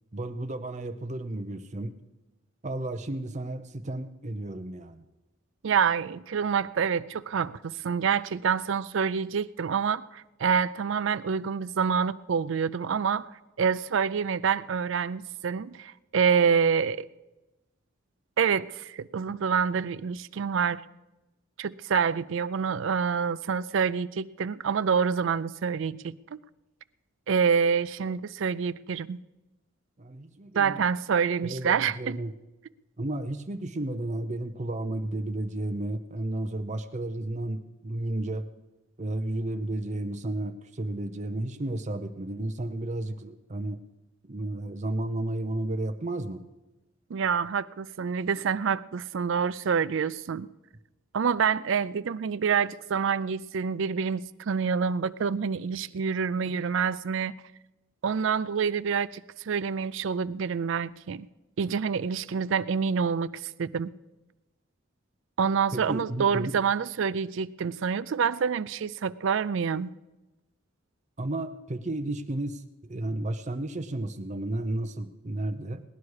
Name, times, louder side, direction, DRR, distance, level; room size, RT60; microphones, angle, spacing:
voice 1, 0.1-2.0 2.6-5.0 30.0-30.8 31.4-32.3 33.0-38.5 39.0-43.8 44.3-46.4 65.7-66.5 71.2-75.8, right 1 dB, 35° right, 0.7 m, -33 dB
voice 2, 5.6-13.3 13.6-17.1 18.4-20.8 21.6-26.4 27.3-29.2 30.6-32.2 47.1-50.5 51.1-57.3 58.0-59.2 59.5-61.3 61.6-63.3 63.6-63.9 65.4-69.9, right 6 dB, 60° right, 0.4 m, -27 dB
18.0 x 11.0 x 4.8 m
head